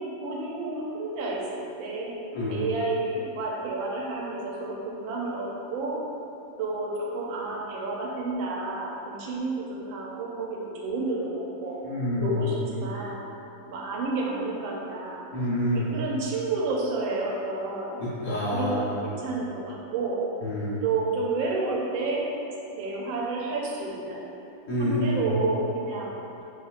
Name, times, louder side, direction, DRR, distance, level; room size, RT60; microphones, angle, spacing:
voice 1, 0.0-2.1 2.5-6.0 6.6-11.8 12.2-13.2 13.7-15.3 15.7-18.0 18.5-20.2 20.8-22.3 22.8-24.3 24.8-26.2, right 3 dB, 85° right, -2 dB, 1.4 m, -30 dB
voice 2, 2.3-2.6 11.8-12.4 15.3-15.9 18.0-19.0 20.4-20.8 24.7-25.2, left 1 dB, 55° left, -11 dB, 0.9 m, -27 dB
4.2 x 3.3 x 2.4 m, 2.8 s
omnidirectional pair, 2.1 m